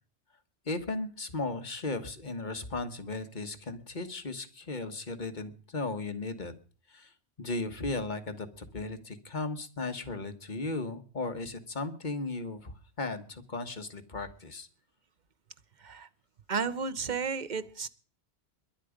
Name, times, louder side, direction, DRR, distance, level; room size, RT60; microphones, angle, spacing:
voice 1, 0.6-6.6 6.9-7.1 7.4-14.7, left 3 dB, 45° left, 8 dB, 1.5 m, -36 dB
voice 2, 16.5-17.9, right 5 dB, 45° right, 14 dB, 0.9 m, -33 dB
22.0 x 8.4 x 5.1 m, 0.40 s
omnidirectional pair, 1.1 m